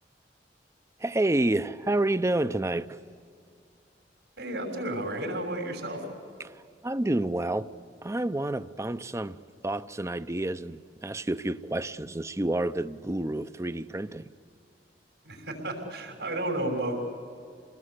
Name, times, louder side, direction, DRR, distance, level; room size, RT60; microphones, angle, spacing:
voice 1, 1.0-2.9 6.4-7.7 8.0-14.3, right 1 dB, 15° right, 0.6 m, -29 dB
voice 2, 4.4-6.1 15.2-16.9, right 1 dB, 85° right, 6.3 m, -32 dB
28.5 x 20.5 x 8.2 m
head